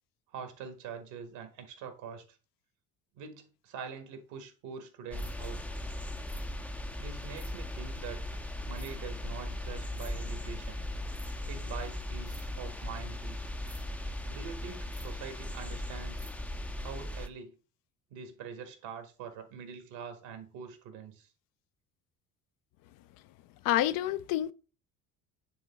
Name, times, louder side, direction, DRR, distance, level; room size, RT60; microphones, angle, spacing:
voice 1, 0.3-2.4 3.1-5.8 7.0-8.4 8.7-10.8 11.5-13.4 14.3-16.3 16.8-17.6 18.1-21.3, right 6 dB, 60° right, 1.8 m, -44 dB
sound 1, 5.1-17.3, left 1 dB, 5° left, 0.6 m, -38 dB
voice 2, 23.6-24.5, left 13 dB, 45° left, 0.5 m, -28 dB
9.5 x 3.7 x 3.6 m
hypercardioid pair, 60°, 47 cm